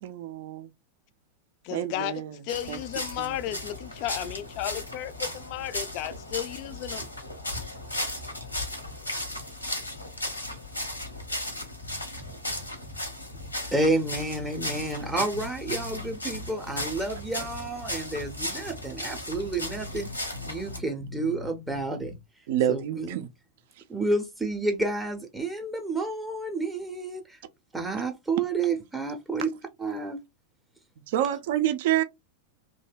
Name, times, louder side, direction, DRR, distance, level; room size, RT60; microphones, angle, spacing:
voice 1, 0.0-0.7 1.7-2.4 2.7-2.8 3.2-3.4 22.5-23.3 31.1-32.0, right 11 dB, 50° right, 0.4 m, -27 dB
voice 2, 1.6-7.1, left 13 dB, 45° left, 0.3 m, -34 dB
sound 1, 2.5-20.8, left 1 dB, 85° left, 0.8 m, -36 dB
sound 2, 11.8-13.0 13.3-13.5 14.0-16.8 17.2-18.3 18.7-18.8 19.3-22.2, left 2 dB, 85° right, 0.7 m, -42 dB
voice 3, 13.7-20.1 20.5-22.1 22.7-23.2 23.9-27.4 27.7-29.5 29.8-30.2, right 2 dB, 5° right, 0.6 m, -30 dB
2.7 x 2.1 x 3.2 m
figure-of-eight pair, 90°, 0 cm